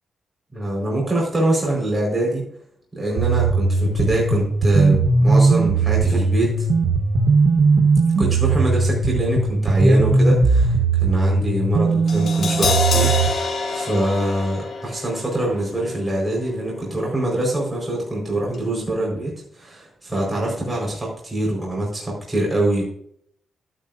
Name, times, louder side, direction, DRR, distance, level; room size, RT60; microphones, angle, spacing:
voice 1, 0.5-2.4 2.9-6.7 8.2-22.8, right 1 dB, 15° right, -3 dB, 4.8 m, -24 dB
sound 1, 3.2-13.3, right 3 dB, 85° right, 1.4 m, -18 dB
Crash cymbal, 12.1-18.2 18.5-18.6, left 4 dB, 65° left, 2.9 m, -28 dB
12.5 x 10.5 x 2.7 m, 0.67 s
cardioid pair, 85°, 0 cm